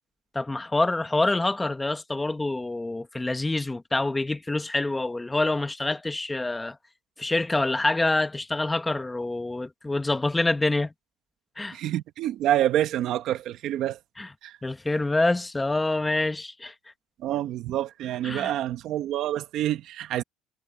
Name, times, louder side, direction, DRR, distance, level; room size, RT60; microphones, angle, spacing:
voice 1, 0.3-6.8 7.2-10.9 11.6-11.8 14.2-14.3 14.6-16.7 18.2-18.5, left 2 dB, 10° left, 1.1 m, -26 dB
voice 2, 11.7-14.0 14.4-14.6 17.2-20.2, right 12 dB, 50° right, 1.4 m, -27 dB
cardioid pair, 155°, 0 cm